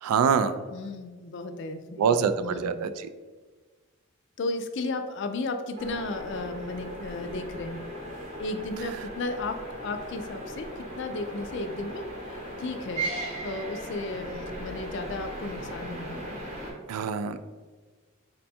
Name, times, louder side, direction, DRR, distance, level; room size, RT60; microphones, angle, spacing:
voice 1, 0.0-0.6 2.0-3.1 16.9-17.4, right 6 dB, 85° right, 14 dB, 0.3 m, -25 dB
voice 2, 0.7-2.7 4.4-7.8 8.4-13.1 13.4-16.4, left 2 dB, 55° left, 7 dB, 0.3 m, -34 dB
sound 1, 5.8-16.7, right 1 dB, 30° right, 0.8 m, -38 dB
4.2 x 2.2 x 4.2 m, 1.4 s
head